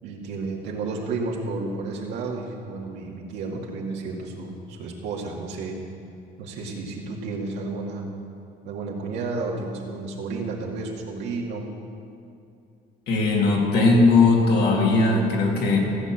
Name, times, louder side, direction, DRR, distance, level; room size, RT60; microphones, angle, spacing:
voice 1, 0.0-5.8 6.4-8.1 8.6-11.7, right 3 dB, 90° right, -2 dB, 2.2 m, -32 dB
voice 2, 13.1-15.8, left 3 dB, 75° left, -1 dB, 2.8 m, -19 dB
15.5 x 6.2 x 8.7 m, 2.5 s
cardioid pair, 110°, 17 cm